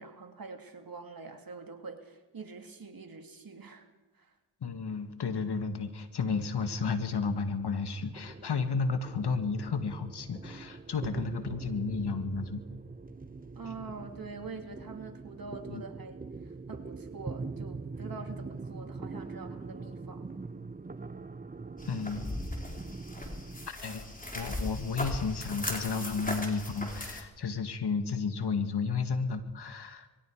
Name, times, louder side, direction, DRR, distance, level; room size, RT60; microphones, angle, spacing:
voice 1, 0.0-3.9 4.2-4.3 13.6-16.2 16.7-20.3, right 4 dB, 55° right, 5 dB, 2.9 m, -45 dB
voice 2, 4.6-12.6 15.7-15.8 21.9-22.2 23.7-24.0 24.3-30.1, left 5 dB, 65° left, 8 dB, 2.0 m, -32 dB
sound 1, 6.9-23.7, right 3 dB, 20° right, 1.0 m, -43 dB
sound 2, 21.8-27.2, left 1 dB, 20° left, 3.7 m, -38 dB
23.5 x 22.5 x 4.9 m, 1.2 s
cardioid pair, 45°, 42 cm